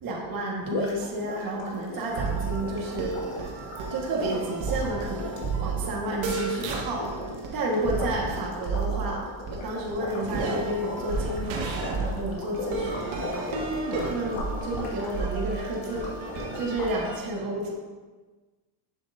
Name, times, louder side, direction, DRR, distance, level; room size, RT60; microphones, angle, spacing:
voice 1, 0.0-13.6 14.0-17.7, right 1 dB, 45° right, -2 dB, 1.8 m, -31 dB
sound 1, 0.6-16.9, left 2 dB, 65° left, 1.9 m, -38 dB
sound 2, 2.0-9.1 9.5-17.1, right 4 dB, 65° right, 1.6 m, -32 dB
8.1 x 7.1 x 2.7 m, 1.3 s
cardioid pair, 130°, 50 cm